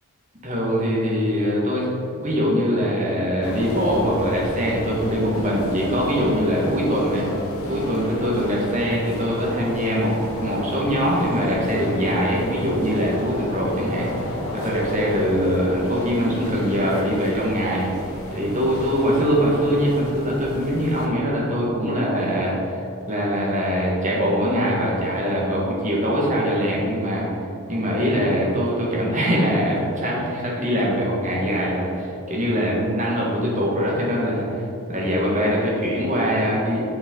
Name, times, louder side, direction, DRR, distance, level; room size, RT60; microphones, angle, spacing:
voice 1, 0.4-7.2 7.7-10.1 10.4-17.8 18.3-22.8 23.1-27.2 27.7-34.6 34.9-36.8, equal, 35° right, -4 dB, 1.5 m, -22 dB
sound 1, 3.4-21.1, left 1 dB, 80° left, 1.0 m, -32 dB
7.3 x 5.6 x 3.8 m, 2.6 s
head